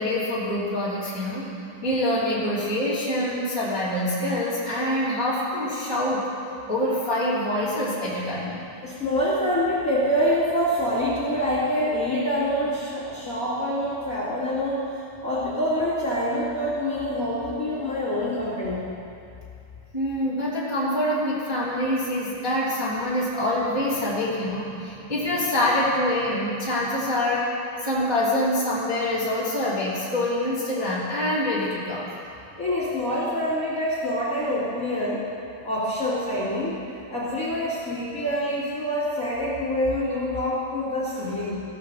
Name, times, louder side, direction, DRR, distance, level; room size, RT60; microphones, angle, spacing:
voice 1, 0.0-1.5 1.8-6.3 6.7-8.6 19.9-27.5 27.8-32.1, left 1 dB, 10° right, -9 dB, 2.2 m, -25 dB
voice 2, 8.8-14.9 15.2-18.8 32.6-35.2 35.6-36.8 37.1-41.6, equal, 30° left, -10 dB, 2.4 m, -26 dB
16.0 x 5.6 x 6.8 m, 2.6 s
omnidirectional pair, 3.4 m